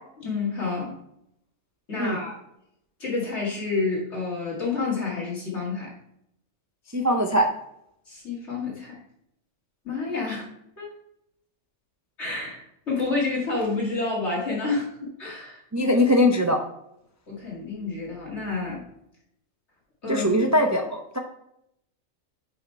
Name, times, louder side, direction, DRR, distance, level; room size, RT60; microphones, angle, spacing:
voice 1, 0.2-1.0 1.9-2.4 3.0-5.9 8.1-9.0 9.8-10.5 10.8-10.9 12.2-15.9 17.3-18.8 20.0-20.3, left 3 dB, 55° left, -4 dB, 2.3 m, -29 dB
voice 2, 6.9-7.5 15.7-16.6 20.1-21.2, left 1 dB, 25° right, 3 dB, 0.4 m, -21 dB
5.7 x 5.5 x 4.5 m, 0.77 s
omnidirectional pair, 1.4 m